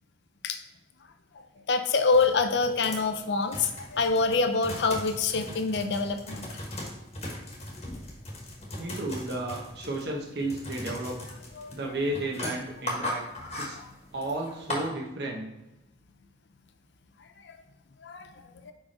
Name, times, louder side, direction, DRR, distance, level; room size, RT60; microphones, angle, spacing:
voice 1, 1.3-6.5 11.6-11.8 13.7-13.9 17.4-17.6 18.0-18.3 18.6-18.7, left 4 dB, 70° left, 7 dB, 0.6 m, -26 dB
sound 1, 2.1-14.9, left 1 dB, 35° left, 1.3 m, -39 dB
voice 2, 8.8-11.2 11.7-13.2 13.6-13.8 14.1-15.4, right 2 dB, 65° right, -1 dB, 1.1 m, -33 dB
5.0 x 4.7 x 4.2 m, 0.98 s
head